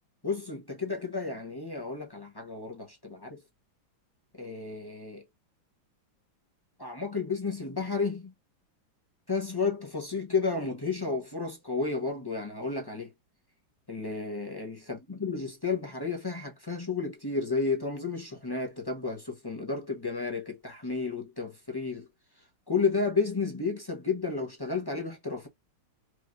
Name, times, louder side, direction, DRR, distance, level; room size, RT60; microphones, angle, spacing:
voice 1, 0.2-3.4 4.4-5.2 6.8-8.3 9.3-13.1 13.9-22.1 22.7-25.5, left 4 dB, 25° left, 0.5 m, -32 dB
5.0 x 2.5 x 3.2 m
omnidirectional pair, 2.2 m